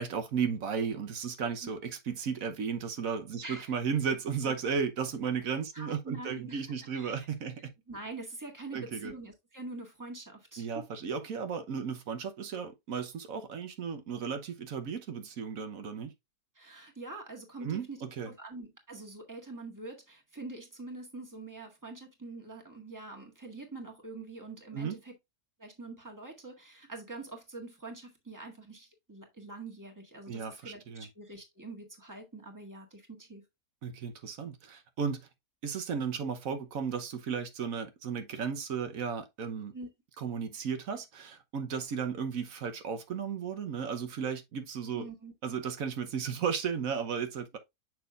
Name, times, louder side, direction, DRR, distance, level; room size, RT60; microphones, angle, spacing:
voice 1, 0.0-7.7 8.7-9.1 10.6-16.1 17.6-18.3 24.7-25.0 30.3-31.1 33.8-35.3 35.6-39.7 40.2-45.1 45.4-47.6, right 6 dB, 65° right, 1.3 m, -34 dB
voice 2, 5.7-6.6 6.9-7.3 7.9-10.7 16.5-25.1 25.6-33.4 39.7-39.9 44.9-45.3, right 3 dB, 10° right, 1.7 m, -45 dB
6.9 x 6.2 x 2.4 m
omnidirectional pair, 1.6 m